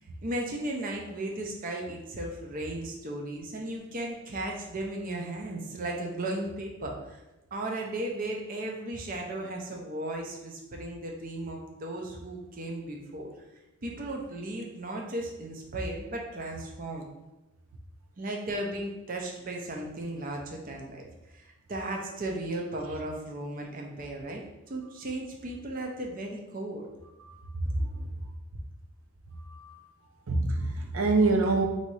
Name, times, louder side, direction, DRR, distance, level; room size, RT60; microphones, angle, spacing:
voice 1, 0.2-7.2 7.5-13.3 13.8-17.0 18.2-21.1 21.3-24.4 24.7-26.9 27.5-27.8, right 1 dB, 40° right, 1 dB, 0.6 m, -35 dB
voice 2, 29.5-29.8 30.3-31.7, right 3 dB, 85° right, 3 dB, 0.7 m, -26 dB
4.0 x 2.8 x 4.7 m, 0.96 s
head